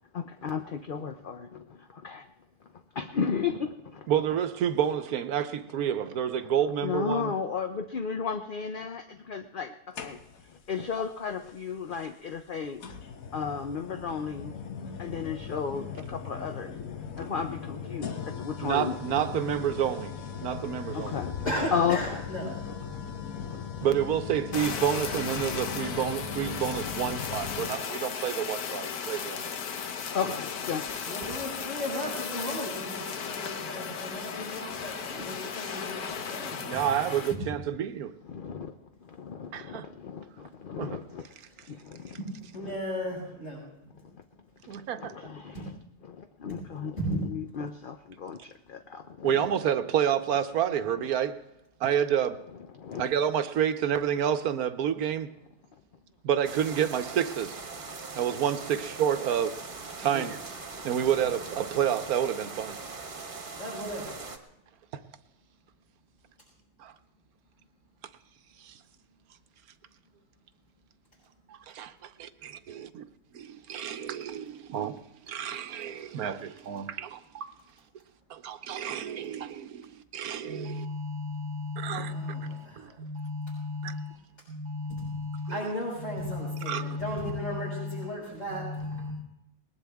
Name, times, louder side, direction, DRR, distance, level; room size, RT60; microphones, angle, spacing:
voice 1, 0.1-2.3 2.6-4.1 6.4-6.5 6.8-12.8 13.3-14.5 15.0-19.4 20.9-21.4 21.7-22.2 22.7-23.0 23.3-23.9 30.1-31.0 35.3-35.4 36.1-36.3 38.2-38.8 39.0-41.3 41.7-42.2 42.6-42.7 44.0-44.2 45.0-45.7 46.0-49.5 50.8-51.1 52.7-53.1, left 6 dB, 50° left, 0.6 m, -34 dB
voice 2, 4.1-7.3 18.6-21.2 23.8-29.4 36.6-38.1 39.5-39.9 40.8-41.0 44.7-45.1 49.2-51.4 51.8-52.4 53.0-55.3 56.2-57.6 58.1-59.5 60.0-60.4 60.8-62.8 64.9-65.0 66.8-66.9 68.6-68.8 71.5-73.0 73.3-75.0 75.3-77.5 78.3-80.9 81.8-82.1 82.8-82.9 83.8-84.0 85.5-85.6 86.7-86.8, right 9 dB, 75° right, 1.2 m, -29 dB
sound 1, 9.9-10.6 11.9-12.0 12.8-27.8, left 7 dB, 65° left, 1.5 m, -39 dB
voice 3, 21.4-22.6 31.1-36.6 37.3-37.4 42.2-42.3 42.5-43.6 45.5-45.7 47.0-47.2 60.1-60.2 63.6-64.1 80.4-84.2 84.5-89.1, left 1 dB, 30° left, 6.9 m, -35 dB
Fire, 24.5-37.4, left 6 dB, 80° left, 1.5 m, -36 dB
sound 2, 56.4-64.4, right 4 dB, 35° right, 1.4 m, -41 dB
20.0 x 19.5 x 3.5 m
omnidirectional pair, 1.6 m